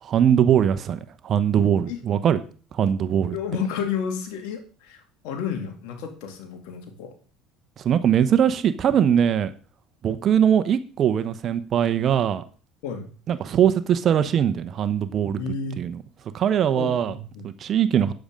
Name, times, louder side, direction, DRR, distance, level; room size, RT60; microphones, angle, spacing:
voice 1, 0.0-2.4 2.7-3.4 7.8-9.5 10.0-12.4 13.3-15.4 15.8-16.0 16.3-17.1 17.4-18.1, right 9 dB, 45° right, 11 dB, 0.9 m, -21 dB
voice 2, 3.3-7.1 12.8-13.1 15.4-15.8 16.8-17.5, left 7 dB, 75° left, 4 dB, 2.5 m, -31 dB
8.7 x 7.9 x 5.2 m, 0.39 s
supercardioid pair, 95°, 0 cm